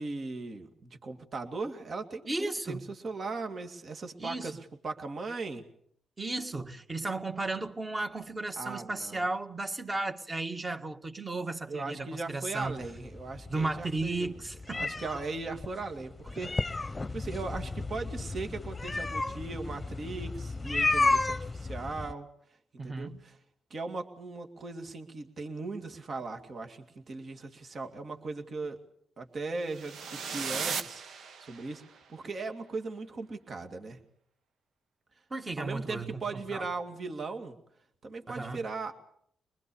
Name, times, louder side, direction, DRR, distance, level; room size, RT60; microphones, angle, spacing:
voice 1, 0.0-4.6 4.8-5.6 8.6-9.2 11.7-14.3 14.7-22.3 22.8-23.4 23.7-28.8 29.2-31.0 31.4-34.0 35.6-37.6 38.0-38.9, right 3 dB, 55° right, 2.3 m, -38 dB
voice 2, 2.3-2.9 4.2-4.5 6.2-12.8 13.5-14.9 22.8-23.3 35.3-36.6 38.3-38.6, right 2 dB, 30° right, 1.9 m, -34 dB
sound 1, 12.6-22.1, left 3 dB, 25° left, 0.9 m, -32 dB
sound 2, 29.7-31.9, right 6 dB, 75° right, 1.4 m, -37 dB
24.0 x 20.5 x 7.0 m
cardioid pair, 65°, 0 cm